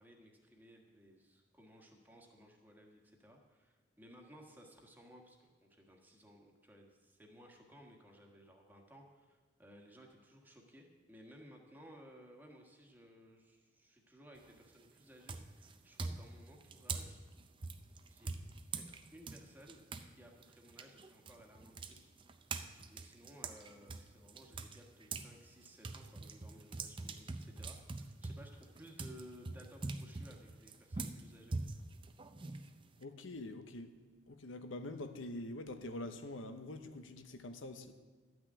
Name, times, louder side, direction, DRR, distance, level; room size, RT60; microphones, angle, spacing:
voice 1, 0.0-17.2 18.1-18.3 18.7-19.8 20.2-22.1 22.9-31.6, equal, 10° right, 1 dB, 1.4 m, -59 dB
sound 1, 14.4-14.7 15.3-20.1 20.4-25.3 25.6-33.0, right 3 dB, 25° right, 0.6 m, -44 dB
voice 2, 33.0-34.0 34.3-37.9, left 2 dB, 85° left, 8 dB, 0.9 m, -45 dB
12.0 x 6.2 x 8.7 m, 1.3 s
head